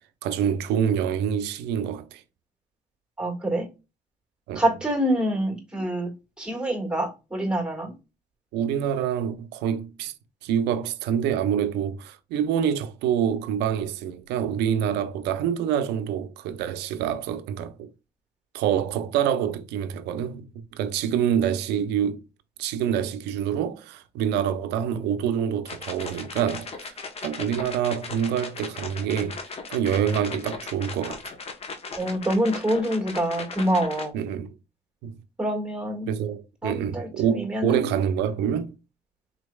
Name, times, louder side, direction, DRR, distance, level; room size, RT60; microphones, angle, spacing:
voice 1, 0.2-2.2 4.5-4.6 8.5-10.1 10.4-17.9 18.5-22.2 22.6-26.9 27.2-29.4 29.7-31.2 34.1-34.6 35.0-35.2 36.1-38.7, right 9 dB, 85° right, 0.5 m, -26 dB
voice 2, 3.2-3.7 4.5-6.1 6.4-7.9 31.9-34.1 35.4-36.1 36.6-37.9, right 1 dB, 5° right, 1.6 m, -26 dB
sound 1, 25.7-34.1, left 4 dB, 35° left, 0.8 m, -38 dB
3.9 x 3.1 x 2.2 m
cardioid pair, 110°, 17 cm